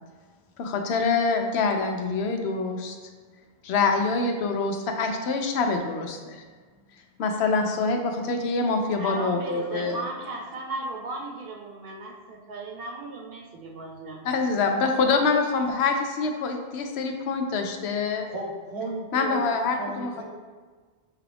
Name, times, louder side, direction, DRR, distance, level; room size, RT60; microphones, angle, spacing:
voice 1, 0.6-3.0 3.6-6.4 7.2-10.0 14.2-18.3 19.1-20.2, left 4 dB, 90° left, 4 dB, 0.9 m, -25 dB
voice 2, 9.0-14.3, right 2 dB, 65° right, 0 dB, 0.9 m, -36 dB
voice 3, 18.3-19.5 19.8-20.2, right 1 dB, 80° right, -2 dB, 1.2 m, -34 dB
6.5 x 2.4 x 3.3 m, 1.5 s
omnidirectional pair, 1.1 m